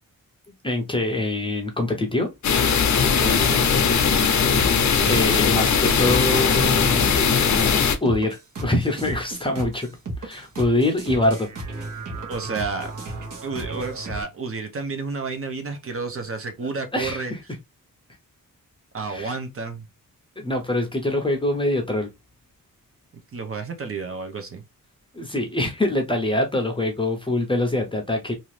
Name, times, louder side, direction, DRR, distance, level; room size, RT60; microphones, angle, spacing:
voice 1, 0.6-2.3 5.1-7.1 8.0-9.9 10.2-11.5 16.9-17.4 19.1-19.4 20.4-22.1 25.1-28.3, left 1 dB, 15° left, 0.6 m, -24 dB
sound 1, 2.4-8.0, left 6 dB, 55° left, 0.6 m, -19 dB
voice 2, 3.2-3.8 12.3-12.9 13.4-17.3 18.9-19.8 23.3-24.6, right 4 dB, 40° right, 0.7 m, -31 dB
sound 2, 4.2-14.2, right 2 dB, 60° right, 1.1 m, -34 dB
2.8 x 2.5 x 3.1 m
wide cardioid pair, 165°, 34 cm